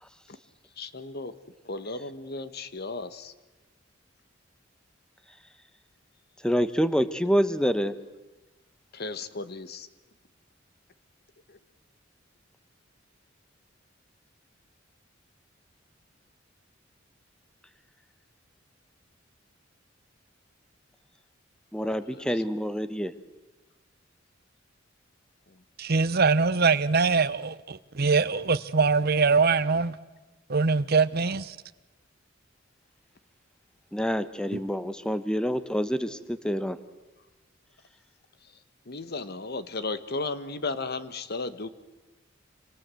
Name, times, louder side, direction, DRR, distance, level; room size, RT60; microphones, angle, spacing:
voice 1, 0.8-1.3 1.6-3.3 8.9-9.9 11.5-11.6 21.8-22.3 38.9-41.7, left 3 dB, 55° left, 1.4 m, -35 dB
voice 2, 6.4-7.9 21.7-23.1 33.9-36.8, equal, 5° left, 1.1 m, -27 dB
voice 3, 25.8-30.0 30.5-31.6 34.5-34.6, right 4 dB, 55° right, 0.8 m, -23 dB
27.0 x 26.0 x 7.8 m
head